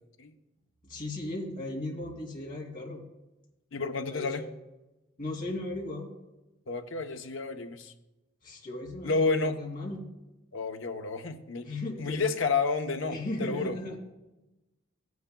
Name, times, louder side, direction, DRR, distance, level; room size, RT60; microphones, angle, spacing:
voice 1, 0.8-3.1 4.1-4.5 5.2-6.1 8.4-10.1 11.6-12.3 13.1-14.0, left 2 dB, 45° left, -3 dB, 2.6 m, -36 dB
voice 2, 3.7-4.5 6.7-7.9 9.0-9.5 10.5-13.8, left 4 dB, 65° left, 6 dB, 0.8 m, -30 dB
15.5 x 9.6 x 2.3 m, 1.0 s
head